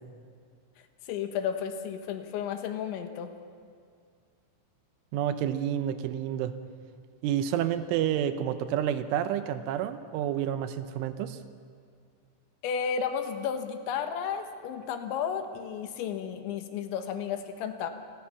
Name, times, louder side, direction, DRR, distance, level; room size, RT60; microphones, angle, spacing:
voice 1, 1.1-3.3 12.6-17.9, left 7 dB, 70° left, 6 dB, 3.5 m, -33 dB
voice 2, 5.1-6.5 7.2-11.4, right 10 dB, 80° right, 10 dB, 3.2 m, -29 dB
29.5 x 20.5 x 5.9 m, 2.2 s
omnidirectional pair, 5.8 m